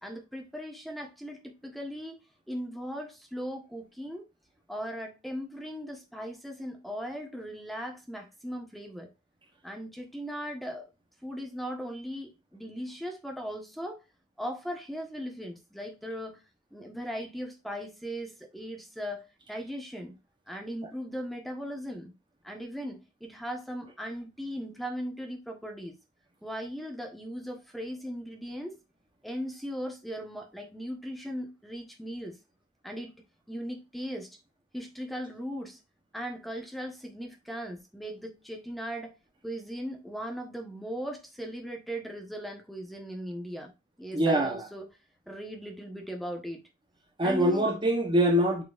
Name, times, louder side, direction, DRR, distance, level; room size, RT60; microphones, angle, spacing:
voice 1, 0.0-2.2 2.5-4.2 4.7-9.1 9.6-10.9 11.2-14.0 14.4-16.4 16.7-20.2 20.5-22.1 22.4-26.0 26.4-28.8 29.2-32.4 32.8-33.1 33.5-34.3 34.7-35.8 36.1-39.1 39.4-43.7 44.0-44.9 45.3-46.6 47.2-47.7, equal, ahead, 1.2 m, -38 dB
voice 2, 44.1-44.7 47.2-48.6, right 1 dB, 20° right, 0.9 m, -24 dB
8.6 x 4.5 x 2.5 m
head